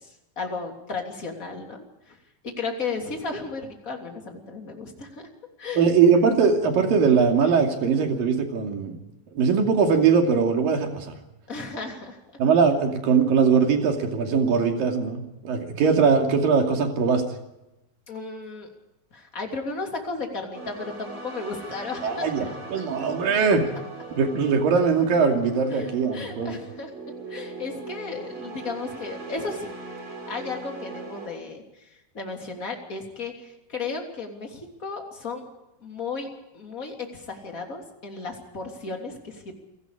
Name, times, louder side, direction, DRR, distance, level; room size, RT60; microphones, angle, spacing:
voice 1, 0.0-2.2 2.4-5.3 5.6-5.9 11.5-12.2 18.1-18.7 19.1-22.3 25.7-26.9 27.3-29.7 30.3-35.5 35.8-36.3 36.5-39.5, left 4 dB, 25° left, 2 dB, 3.1 m, -34 dB
voice 2, 5.8-9.0 9.4-11.2 12.4-17.2 22.0-23.6 24.1-26.6, right 5 dB, 65° right, 4 dB, 4.1 m, -21 dB
sound 1, 20.5-31.3, right 3 dB, 30° right, 4.9 m, -40 dB
28.5 x 18.5 x 4.9 m, 0.94 s
omnidirectional pair, 4.5 m